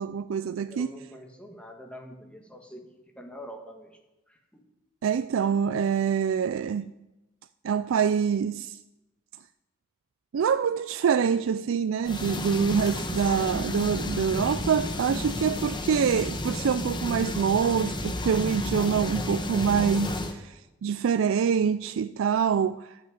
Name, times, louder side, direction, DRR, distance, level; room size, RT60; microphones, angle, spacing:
voice 1, 0.0-0.9 5.0-6.9 7.6-8.8 10.3-22.9, right 7 dB, 80° right, 0.4 m, -25 dB
voice 2, 0.7-2.9 3.1-4.0 4.3-4.6, equal, 5° left, 1.6 m, -45 dB
sound 1, 12.0-20.3, left 2 dB, 25° left, 1.1 m, -32 dB
11.5 x 6.1 x 9.2 m
head